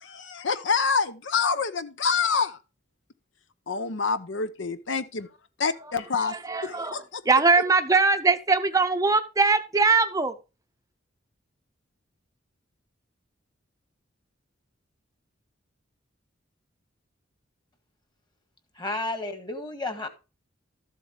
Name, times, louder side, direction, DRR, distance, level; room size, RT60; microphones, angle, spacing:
voice 1, 0.0-2.6 3.7-5.3 5.6-7.2, left 5 dB, 70° left, 0.7 m, -27 dB
voice 2, 6.5-7.0 7.3-10.3, right 4 dB, 20° right, 0.7 m, -21 dB
voice 3, 18.8-20.1, left 2 dB, 25° left, 1.7 m, -32 dB
13.0 x 7.7 x 3.3 m
head